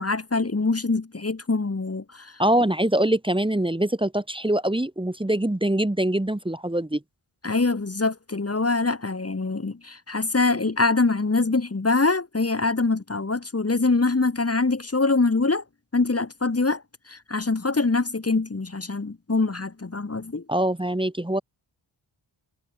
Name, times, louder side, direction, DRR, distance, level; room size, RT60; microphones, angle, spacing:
voice 1, 0.0-2.3 7.4-15.6 15.9-16.8 17.1-20.4, left 3 dB, 30° left, 3.0 m, -24 dB
voice 2, 2.4-7.0 20.5-21.4, right 1 dB, 10° right, 2.6 m, -23 dB
wide cardioid pair, 125°, 47 cm